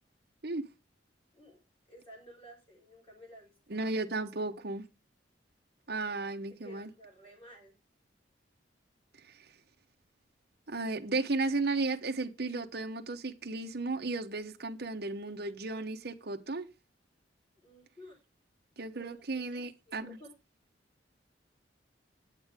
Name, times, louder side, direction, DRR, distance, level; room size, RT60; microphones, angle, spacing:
voice 1, 1.9-3.5 6.5-7.8 17.5-18.2 19.0-20.3, equal, 30° left, 6.7 m, -54 dB
voice 2, 3.7-4.8 5.9-6.9 10.7-16.7 18.8-20.2, right 3 dB, 55° right, 0.9 m, -34 dB
9.2 x 8.2 x 3.5 m
head